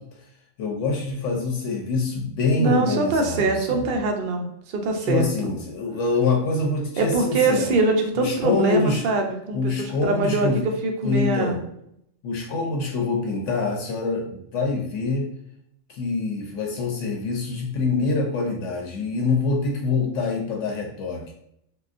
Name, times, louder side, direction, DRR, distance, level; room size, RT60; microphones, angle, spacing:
voice 1, 0.6-3.9 5.0-7.8 8.2-9.0 9.5-10.7 11.0-11.6 12.2-15.2 15.9-21.3, left 3 dB, 75° left, 1 dB, 0.9 m, -25 dB
voice 2, 2.6-5.3 7.0-10.5 10.8-11.6, right 2 dB, 55° right, 3 dB, 0.6 m, -23 dB
3.7 x 2.3 x 2.4 m, 0.75 s
omnidirectional pair, 1.3 m